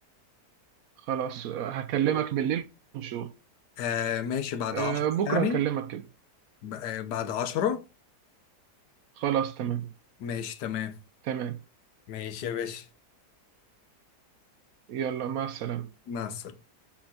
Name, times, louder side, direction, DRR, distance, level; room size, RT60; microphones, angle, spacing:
voice 1, 1.1-2.6 2.9-3.3 4.7-6.0 9.2-9.9 11.3-11.6 14.9-15.9, right 10 dB, 70° right, 0.9 m, -29 dB
voice 2, 3.8-5.6 6.6-7.8 10.2-10.9 12.1-12.9 16.1-16.5, left 8 dB, 85° left, 1.4 m, -31 dB
6.3 x 5.7 x 2.7 m
omnidirectional pair, 1.7 m